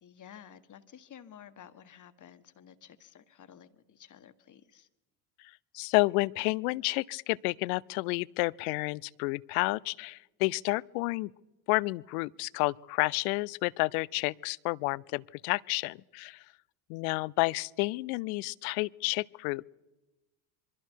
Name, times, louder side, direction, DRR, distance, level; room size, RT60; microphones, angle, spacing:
voice 1, 0.0-4.9, left 9 dB, 40° left, 1.6 m, -53 dB
voice 2, 5.7-11.3 11.7-16.4 16.9-19.6, left 24 dB, 75° left, 0.6 m, -30 dB
26.5 x 23.0 x 4.6 m
hypercardioid pair, 75°, 44 cm